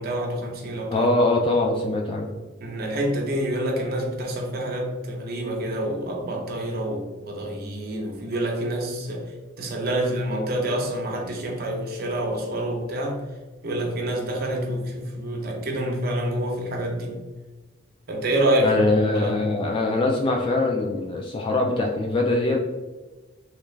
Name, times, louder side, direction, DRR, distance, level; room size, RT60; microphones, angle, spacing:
voice 1, 0.0-1.1 2.6-9.3 9.6-13.2 13.6-17.2 18.1-18.8 19.1-19.3, right 1 dB, 55° right, 0 dB, 0.7 m, -27 dB
voice 2, 0.9-2.3 18.6-22.6, left 2 dB, 25° left, 1 dB, 0.3 m, -22 dB
3.1 x 2.4 x 3.3 m, 1.2 s
head